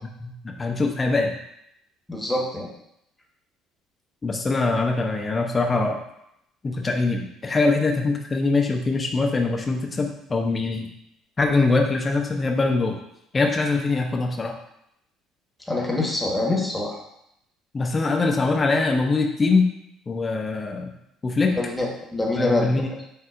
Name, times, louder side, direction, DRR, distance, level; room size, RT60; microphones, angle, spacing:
voice 1, 0.2-1.3 4.2-6.0 6.6-10.9 11.4-13.0 13.3-14.6 17.7-19.7 20.1-20.9 21.2-21.6 22.4-22.9, left 3 dB, 25° left, 3 dB, 0.7 m, -23 dB
voice 2, 2.1-2.7 15.7-17.0 21.6-22.9, left 2 dB, 10° left, -1 dB, 1.2 m, -25 dB
7.5 x 2.7 x 2.5 m, 0.78 s
figure-of-eight pair, 55°, 0 cm